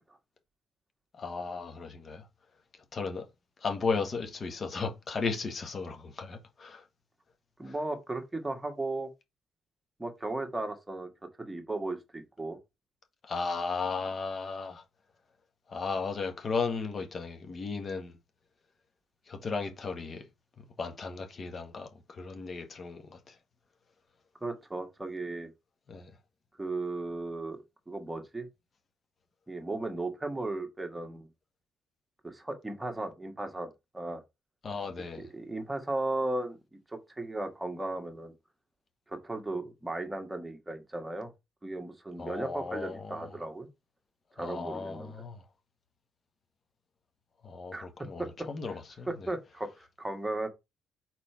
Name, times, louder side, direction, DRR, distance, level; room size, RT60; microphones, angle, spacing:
voice 1, 1.2-2.2 2.9-3.2 3.6-6.8 7.7-7.8 13.3-14.8 15.7-18.2 19.3-20.2 20.8-23.2 25.9-26.1 34.6-35.2 42.2-43.2 44.4-45.4 47.4-49.1, left 4 dB, 40° left, 1.5 m, -35 dB
voice 2, 7.6-9.1 10.0-11.1 11.4-12.6 24.4-25.5 26.6-27.6 27.9-28.5 29.5-31.3 32.2-34.2 35.2-36.6 36.9-38.3 39.1-41.3 41.6-43.7 44.3-45.1 47.7-47.9 48.2-48.8 49.1-50.5, right 2 dB, 10° right, 1.6 m, -36 dB
4.4 x 4.3 x 5.6 m
cardioid pair, 95°, 0 cm